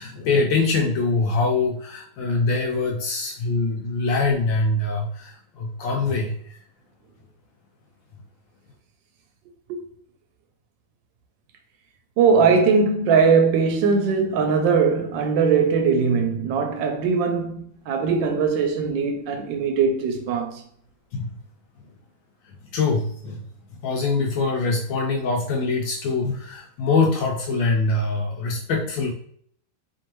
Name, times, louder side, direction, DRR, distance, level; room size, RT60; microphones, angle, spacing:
voice 1, 0.0-6.6 21.1-21.3 22.4-29.1, left 3 dB, 80° left, 1.3 m, -24 dB
voice 2, 12.2-20.6, right 5 dB, 75° right, 1.2 m, -20 dB
4.5 x 2.9 x 3.0 m
omnidirectional pair, 2.1 m